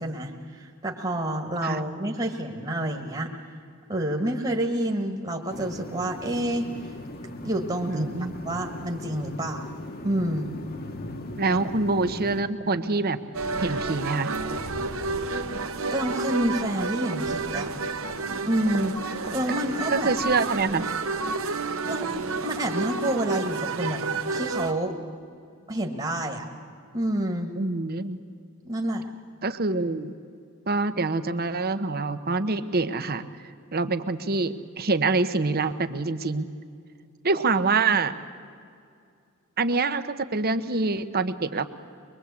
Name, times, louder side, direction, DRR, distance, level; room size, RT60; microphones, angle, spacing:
voice 1, 0.0-3.3 3.9-6.7 7.4-8.1 8.4-9.7 10.0-10.5 11.4-11.6 15.9-17.7 18.5-20.1 21.9-22.1 22.4-24.0 24.3-25.0 25.7-26.5 26.9-27.5 28.6-29.1, right 1 dB, 25° right, 2 dB, 1.8 m, -28 dB
sound 1, 5.5-12.4, left 1 dB, 45° left, 1.4 m, -38 dB
voice 2, 7.9-8.4 11.4-13.2 13.6-14.3 19.5-19.6 19.9-20.8 27.6-28.2 29.4-30.1 30.7-33.3 33.7-36.5 37.2-38.1 39.6-41.7, right 3 dB, 45° right, 11 dB, 1.0 m, -25 dB
sound 2, 13.3-24.7, right 3 dB, 65° right, 1.4 m, -30 dB
23.5 x 22.5 x 8.3 m, 2.3 s
head